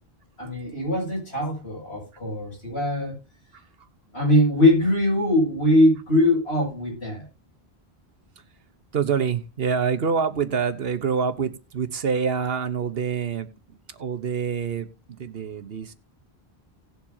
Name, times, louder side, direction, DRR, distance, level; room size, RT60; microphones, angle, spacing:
voice 1, 0.4-3.2 4.1-7.3, left 1 dB, 85° left, -3 dB, 8.3 m, -21 dB
voice 2, 8.9-15.9, right 6 dB, 70° right, 12 dB, 1.2 m, -26 dB
18.5 x 7.4 x 2.8 m, 0.26 s
omnidirectional pair, 1.1 m